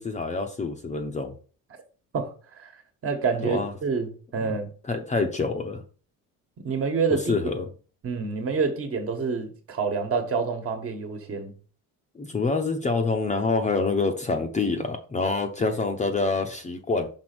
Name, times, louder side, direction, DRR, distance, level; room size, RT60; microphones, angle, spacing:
voice 1, 0.0-1.3 3.4-3.7 4.8-5.8 7.1-7.7 12.1-17.1, left 3 dB, 20° left, 0.8 m, -26 dB
voice 2, 3.0-4.7 6.6-7.3 8.0-11.5, right 5 dB, 35° right, 1.5 m, -27 dB
6.3 x 4.1 x 6.0 m
cardioid pair, 150°, 36 cm